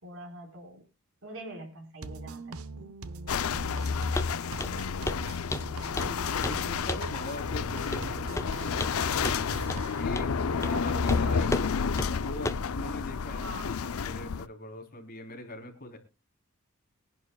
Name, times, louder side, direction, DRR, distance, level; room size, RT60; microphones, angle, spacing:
voice 1, 0.0-0.8 1.2-2.9 10.6-11.5 13.4-13.8, right 1 dB, 65° right, 4 dB, 4.5 m, -43 dB
sound 1, 2.0-10.0, right 3 dB, 80° right, 0.8 m, -42 dB
sound 2, 3.3-14.5, left 5 dB, 80° left, 0.5 m, -30 dB
Walk footsteps, 4.2-4.3 4.6-4.8 5.1-5.2 5.5-6.2 6.4-6.6 6.9-7.1 7.9-8.1 8.4-9.0 9.2-9.4 9.7-9.8 10.2-10.3 10.6-10.8 11.1-11.2 11.5-11.7 12.0-12.1 12.5-12.7, left 2 dB, 15° left, 0.6 m, -33 dB
voice 2, 6.5-9.1 9.8-16.0, left 1 dB, 45° left, 2 dB, 3.6 m, -41 dB
24.0 x 11.0 x 2.3 m, 0.28 s
head